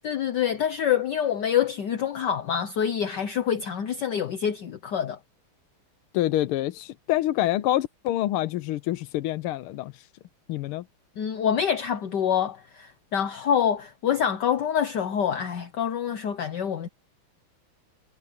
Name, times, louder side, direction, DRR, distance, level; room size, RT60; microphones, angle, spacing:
voice 1, 0.0-5.2 11.2-16.9, left 8 dB, 60° left, 1.4 m, -26 dB
voice 2, 6.1-10.1 10.5-10.8, left 14 dB, 90° left, 1.6 m, -26 dB
omnidirectional pair, 2.4 m